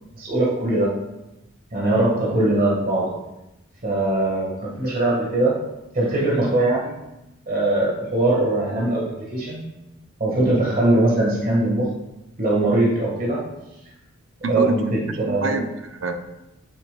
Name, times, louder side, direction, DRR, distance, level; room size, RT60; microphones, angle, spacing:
voice 1, 0.1-0.9 1.7-3.1 3.8-5.6 5.9-6.9 7.5-9.0 9.3-9.6 10.2-11.9 12.4-13.4 14.5-15.6, right 2 dB, 45° right, -4 dB, 1.4 m, -21 dB
voice 2, 14.4-16.1, right 2 dB, 65° right, 6 dB, 0.7 m, -26 dB
8.4 x 6.8 x 2.2 m, 0.94 s
head